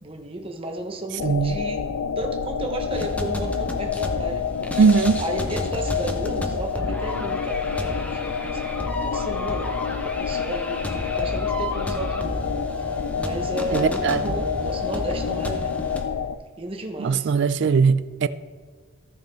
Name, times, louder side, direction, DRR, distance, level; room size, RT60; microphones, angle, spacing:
voice 1, 0.0-1.8 2.2-4.7 5.2-12.4 13.2-15.7 16.6-17.3, right 1 dB, 25° right, 1.0 m, -33 dB
sound 1, 1.2-16.4, left 6 dB, 85° left, 0.4 m, -28 dB
voice 2, 1.2-1.6 4.8-5.2 13.7-14.3 17.0-18.3, right 5 dB, 55° right, 0.3 m, -20 dB
sound 2, 2.9-16.0, equal, 5° left, 0.6 m, -33 dB
14.0 x 6.3 x 3.4 m
head